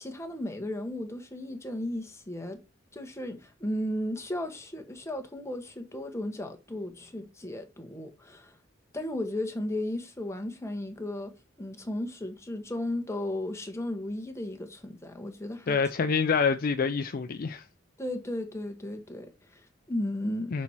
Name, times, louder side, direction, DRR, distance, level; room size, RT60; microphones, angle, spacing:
voice 1, 0.0-2.6 2.9-8.6 8.9-11.3 11.6-15.8 18.0-20.6, left 1 dB, 15° left, 1.1 m, -35 dB
voice 2, 15.7-17.6 20.5-20.6, left 5 dB, 50° left, 0.4 m, -26 dB
6.2 x 4.2 x 4.4 m
head